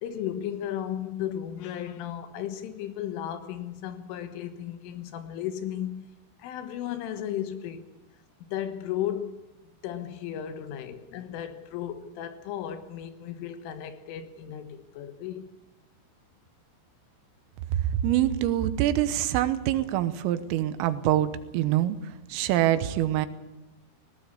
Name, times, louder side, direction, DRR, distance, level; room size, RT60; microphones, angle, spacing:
voice 1, 0.0-6.1 6.4-7.9 8.5-9.4 9.8-15.5, left 10 dB, 75° left, 3.7 m, -35 dB
voice 2, 17.7-23.3, right 12 dB, 80° right, 3.6 m, -25 dB
18.5 x 18.5 x 8.5 m
omnidirectional pair, 6.0 m